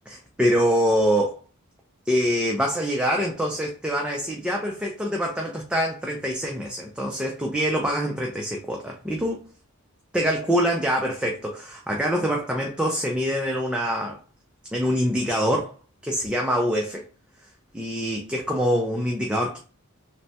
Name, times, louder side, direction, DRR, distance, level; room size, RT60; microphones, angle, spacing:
voice 1, 0.1-1.4 2.1-9.4 10.1-14.2 14.7-15.7 16.0-17.0 17.7-19.6, equal, 5° right, 0.3 m, -25 dB
3.2 x 2.1 x 2.7 m
head